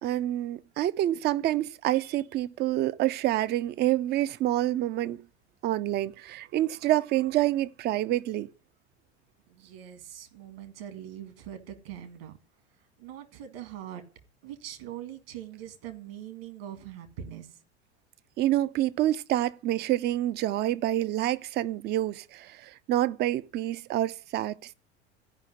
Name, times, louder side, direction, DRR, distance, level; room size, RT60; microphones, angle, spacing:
voice 1, 0.0-5.2 5.6-8.5 18.4-24.7, right 14 dB, 30° right, 0.5 m, -27 dB
voice 2, 9.5-12.3 13.0-14.0 14.4-17.6, right 10 dB, 60° right, 2.0 m, -42 dB
14.0 x 5.6 x 9.5 m
figure-of-eight pair, 75°, 33 cm